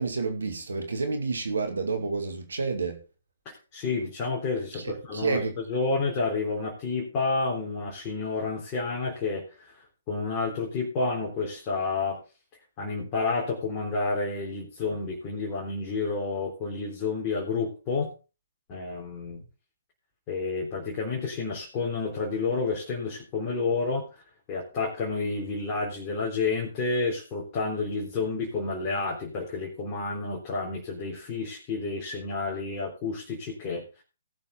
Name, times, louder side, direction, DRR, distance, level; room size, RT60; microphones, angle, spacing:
voice 1, 0.0-3.0 4.7-5.6, right 4 dB, 70° right, 2.3 m, -29 dB
voice 2, 3.5-12.2 12.8-18.1 18.7-19.4 20.3-24.2 24.5-34.0, left 3 dB, 25° left, 3.6 m, -30 dB
18.5 x 7.2 x 3.6 m
figure-of-eight pair, 130°, 0 cm